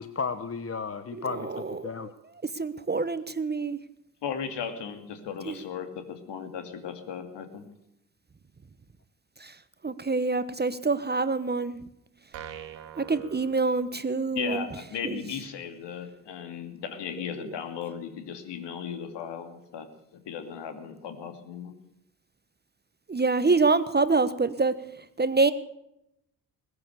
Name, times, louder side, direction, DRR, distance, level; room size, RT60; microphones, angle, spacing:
voice 1, 0.0-2.1, left 5 dB, 30° left, 12 dB, 1.1 m, -34 dB
voice 2, 1.1-2.1 2.5-3.8 5.5-5.6 9.4-9.5 9.8-11.8 13.0-14.7 15.0-15.2 17.4-17.5 23.1-24.8 25.2-25.5, right 3 dB, 20° right, 14 dB, 1.1 m, -26 dB
voice 3, 4.2-7.6 14.3-19.9 20.3-21.7, left 7 dB, 60° left, 8 dB, 2.6 m, -36 dB
sound 1, 12.3-14.3, right 10 dB, 65° right, 2.0 m, -43 dB
21.0 x 9.8 x 6.8 m, 0.80 s
figure-of-eight pair, 45°, 48 cm